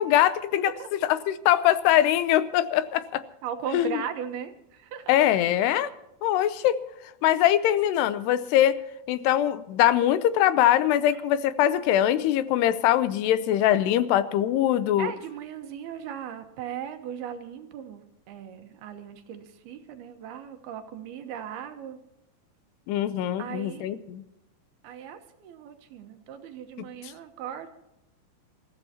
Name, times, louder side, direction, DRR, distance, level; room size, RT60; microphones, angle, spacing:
voice 1, 0.0-3.2 3.7-4.0 5.1-5.9 6.2-6.8 7.2-8.8 9.1-15.1 22.9-24.2, left 12 dB, 80° left, 13 dB, 2.7 m, -22 dB
voice 2, 3.4-5.1 11.1-11.2 15.0-22.0 23.4-24.0 24.8-27.7, right 8 dB, 70° right, 6 dB, 2.8 m, -38 dB
27.5 x 14.5 x 2.9 m, 0.89 s
omnidirectional pair, 4.9 m